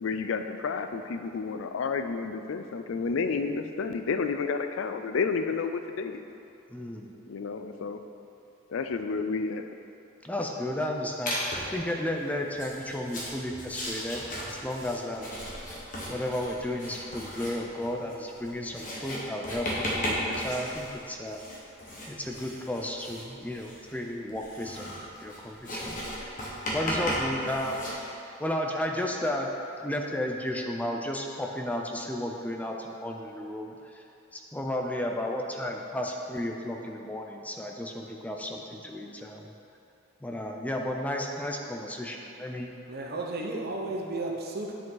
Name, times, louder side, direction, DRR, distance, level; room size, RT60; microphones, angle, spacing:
voice 1, 0.0-6.2 7.3-8.0 8.7-9.6, left 4 dB, 70° left, 8 dB, 0.4 m, -30 dB
voice 2, 6.7-7.1 10.2-15.3 15.7-15.8 16.1-21.4 22.1-26.0 26.7-27.9 28.4-29.5 29.8-34.0 34.3-39.5 40.2-42.7, left 1 dB, 5° left, 1 dB, 0.5 m, -33 dB
Writing, 11.3-11.8 12.5-27.9, equal, 40° left, 1.5 m, -36 dB
voice 3, 42.9-44.7, right 2 dB, 50° right, -1 dB, 0.9 m, -33 dB
9.9 x 5.1 x 3.9 m, 2.7 s
head